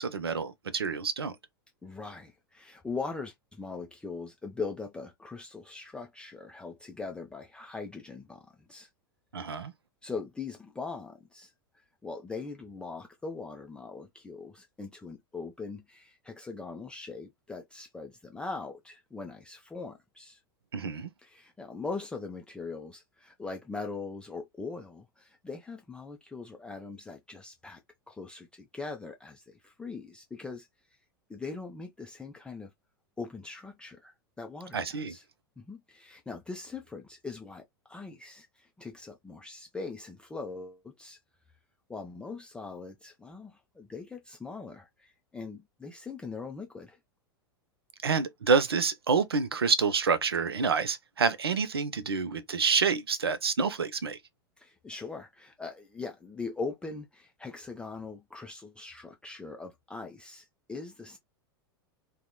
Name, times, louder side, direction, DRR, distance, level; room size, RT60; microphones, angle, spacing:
voice 1, 0.0-1.3 9.3-9.7 20.7-21.1 34.7-35.1 48.0-54.2, right 5 dB, 80° right, 0.4 m, -28 dB
voice 2, 1.8-8.9 10.0-11.5 12.0-20.4 21.2-27.8 28.1-30.7 31.3-32.7 33.2-35.2 35.6-41.2 41.9-47.0 54.6-61.2, left 4 dB, 10° left, 0.3 m, -41 dB
2.8 x 2.0 x 2.2 m
figure-of-eight pair, 90°, 13 cm